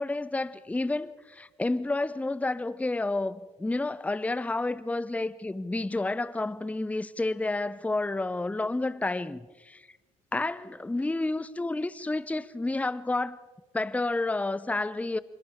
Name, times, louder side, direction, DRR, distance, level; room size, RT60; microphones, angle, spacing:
voice 1, 0.0-9.8 10.3-13.4 13.7-15.2, left 2 dB, 10° left, 0.7 m, -30 dB
26.5 x 25.0 x 4.5 m
figure-of-eight pair, 45°, 17 cm